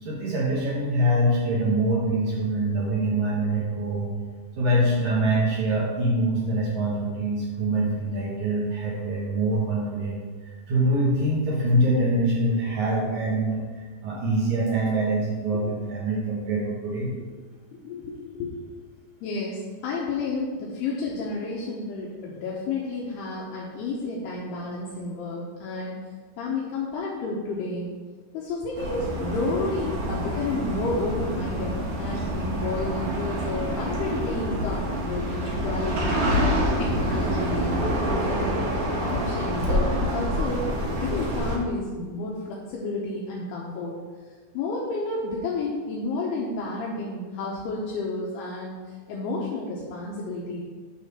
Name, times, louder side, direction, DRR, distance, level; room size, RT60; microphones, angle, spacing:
voice 1, 0.0-4.1 4.6-17.1, right 1 dB, 80° right, -6 dB, 1.7 m, -24 dB
voice 2, 17.7-18.6 19.2-26.0 26.4-28.0 28.3-36.2 36.8-38.5 38.7-43.9 44.5-50.6, left 3 dB, 80° left, -4 dB, 2.4 m, -31 dB
sound 1, 28.8-41.6, equal, 65° right, 2.2 m, -27 dB
10.5 x 3.8 x 5.7 m, 1.5 s
omnidirectional pair, 5.8 m